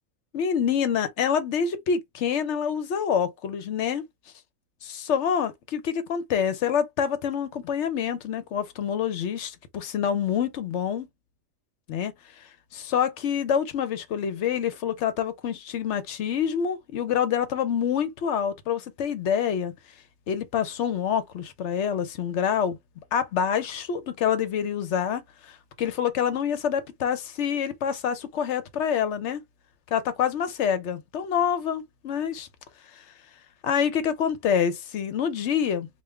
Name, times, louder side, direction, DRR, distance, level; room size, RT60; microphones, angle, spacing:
voice 1, 0.3-4.0 4.8-11.1 11.9-19.7 20.3-22.8 23.1-29.4 29.9-32.5 32.9-33.0 33.6-35.9, left 8 dB, 65° left, 0.8 m, -27 dB
3.5 x 2.4 x 3.1 m
omnidirectional pair, 1.4 m